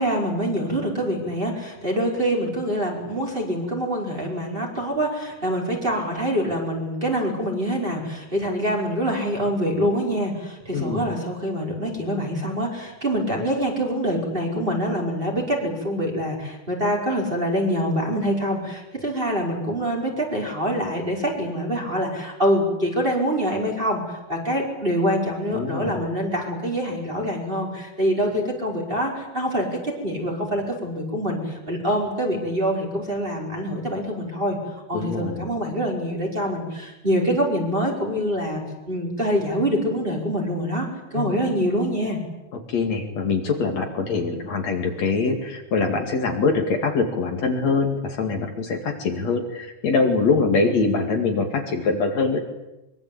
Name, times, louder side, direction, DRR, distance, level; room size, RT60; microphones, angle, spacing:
voice 1, 0.0-34.6 34.9-38.6 38.9-42.2, equal, 15° right, -1 dB, 5.4 m, -25 dB
voice 2, 25.5-26.0 34.9-35.5 41.1-41.4 42.5-52.4, left 4 dB, 60° left, 4 dB, 3.3 m, -23 dB
24.5 x 23.5 x 8.8 m, 0.97 s
omnidirectional pair, 3.6 m